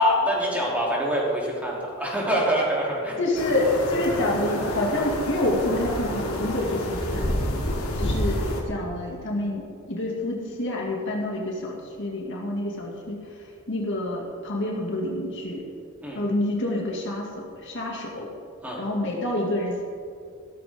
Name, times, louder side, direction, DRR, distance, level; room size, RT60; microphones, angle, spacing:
voice 1, 0.0-3.2 16.0-16.2 18.6-18.8, equal, 5° right, -5 dB, 3.2 m, -24 dB
voice 2, 3.2-7.4 8.0-13.2 13.7-15.7 16.1-18.3 18.8-19.8, left 1 dB, 55° left, -2 dB, 2.3 m, -27 dB
sound 1, 3.3-8.6, left 1 dB, 90° left, 2.4 m, -28 dB
16.0 x 13.5 x 3.7 m, 2.2 s
head